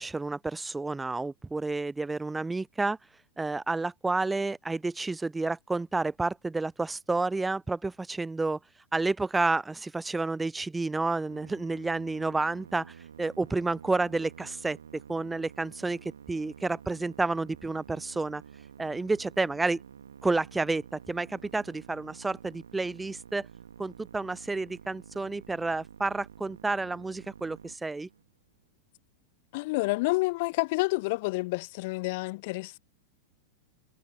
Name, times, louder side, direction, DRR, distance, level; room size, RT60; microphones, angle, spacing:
voice 1, 0.0-3.0 3.4-8.6 8.9-14.8 15.1-18.4 18.8-19.8 20.2-23.5 23.8-28.1, right 3 dB, 10° right, 0.4 m, -30 dB
Musical instrument, 11.3-28.4, right 8 dB, 65° right, 1.9 m, -50 dB
voice 2, 29.5-32.8, left 24 dB, 50° left, 0.8 m, -29 dB
figure-of-eight pair, 90°, 0 cm